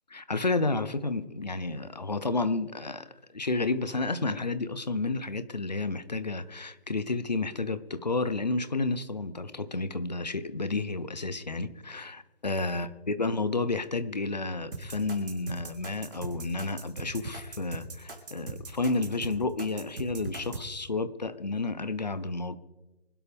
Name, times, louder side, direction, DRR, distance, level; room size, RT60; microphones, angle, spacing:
voice 1, 0.1-3.1 3.3-22.6, left 3 dB, 40° left, 13 dB, 0.8 m, -31 dB
sound 1, 14.7-20.6, right 3 dB, 50° right, 3.5 m, -40 dB
25.0 x 12.0 x 3.5 m, 1.1 s
hypercardioid pair, 180°, 33 cm